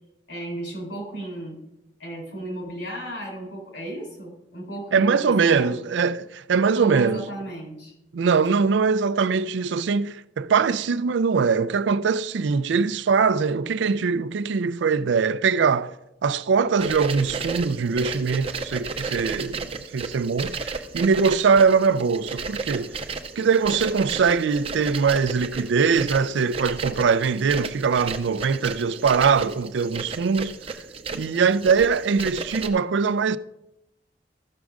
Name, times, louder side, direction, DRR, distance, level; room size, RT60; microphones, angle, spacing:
voice 1, 0.3-1.6 2.0-5.8 6.7-7.9, right 1 dB, 85° left, 4.1 m, -34 dB
voice 2, 4.9-7.3 8.1-15.9 16.2-19.7 19.9-23.0 23.4-30.6 31.1-33.4, right 5 dB, 80° right, 0.4 m, -22 dB
sound 1, 16.8-32.7, right 4 dB, 30° right, 0.6 m, -34 dB
14.0 x 6.2 x 3.6 m
head